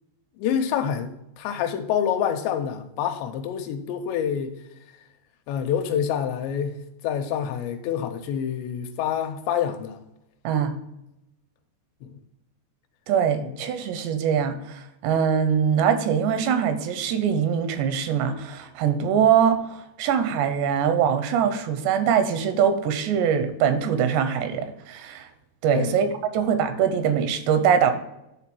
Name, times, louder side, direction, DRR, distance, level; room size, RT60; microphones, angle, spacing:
voice 1, 0.4-4.6 5.5-6.8 7.0-10.0 12.0-12.2 13.4-13.5 25.7-26.0, left 8 dB, 85° left, 3.0 m, -27 dB
voice 2, 10.4-10.8 13.1-25.3 25.6-27.9, right 8 dB, 80° right, 3.0 m, -23 dB
10.5 x 3.7 x 6.1 m
omnidirectional pair, 4.9 m